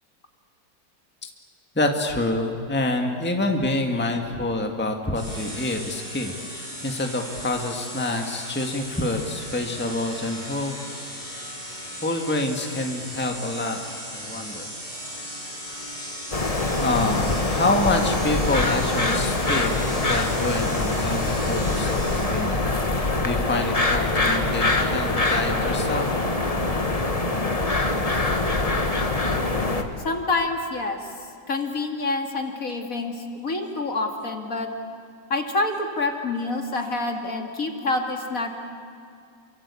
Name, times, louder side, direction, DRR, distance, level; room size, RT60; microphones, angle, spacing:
voice 1, 1.8-10.8 12.0-13.8 14.1-14.7 16.8-26.2, left 2 dB, 5° left, 3 dB, 1.8 m, -27 dB
sound 1, 5.1-22.7, equal, 25° right, 6.0 m, -37 dB
sound 2, 16.3-29.8, left 2 dB, 20° left, 1.5 m, -24 dB
voice 2, 30.0-31.0 31.5-34.7 35.3-38.5, left 3 dB, 50° left, 3 dB, 2.6 m, -27 dB
29.0 x 24.5 x 8.5 m, 2.4 s
omnidirectional pair, 1.9 m